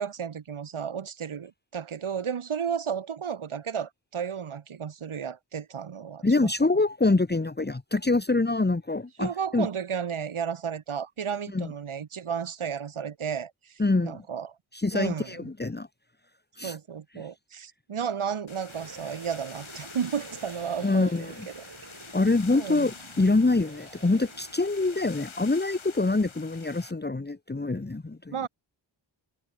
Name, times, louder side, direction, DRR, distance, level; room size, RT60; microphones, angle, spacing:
voice 1, 0.0-6.2 9.2-14.5 14.9-15.5 16.6-21.6 22.5-22.9 28.3-28.5, right 7 dB, 85° right, 3.1 m, -33 dB
voice 2, 6.2-9.7 11.5-11.7 13.8-14.2 14.7-15.9 16.6-16.8 17.2-17.3 20.8-21.5 22.1-28.3, left 3 dB, 20° left, 1.7 m, -25 dB
sound 1, 18.5-26.9, left 6 dB, 75° left, 7.8 m, -47 dB
sound 2, 18.7-25.0, right 4 dB, 55° right, 6.0 m, -48 dB
wide cardioid pair, 80°, 48 cm